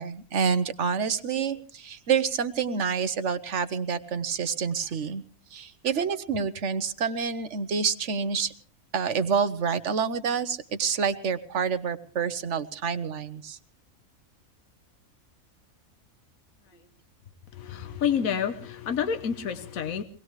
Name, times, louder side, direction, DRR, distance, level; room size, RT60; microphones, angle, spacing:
voice 1, 0.0-5.2 5.5-8.5 8.9-13.6, right 6 dB, 60° right, 12 dB, 1.3 m, -28 dB
voice 2, 17.5-20.0, left 7 dB, 80° left, 9 dB, 1.5 m, -28 dB
24.0 x 19.0 x 3.2 m, 0.42 s
omnidirectional pair, 1.4 m